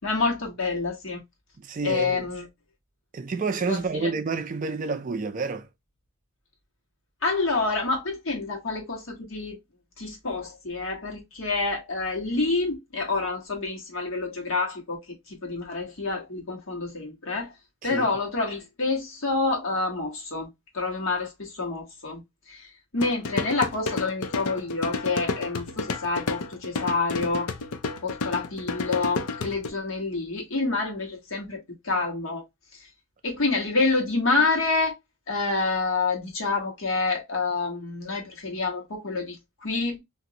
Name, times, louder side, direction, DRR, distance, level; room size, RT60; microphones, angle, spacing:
voice 1, 0.0-1.2 1.8-2.5 3.7-4.1 7.2-9.6 10.0-17.5 17.8-20.5 20.7-27.5 28.0-32.4 32.7-32.9 33.2-35.0 35.3-40.0, left 3 dB, 60° left, 1.2 m, -28 dB
voice 2, 1.6-2.3 3.1-5.7 17.8-18.1, right 4 dB, 35° right, 0.3 m, -29 dB
sound 1, 23.0-29.7, left 3 dB, 90° left, 0.5 m, -31 dB
2.9 x 2.5 x 2.7 m
head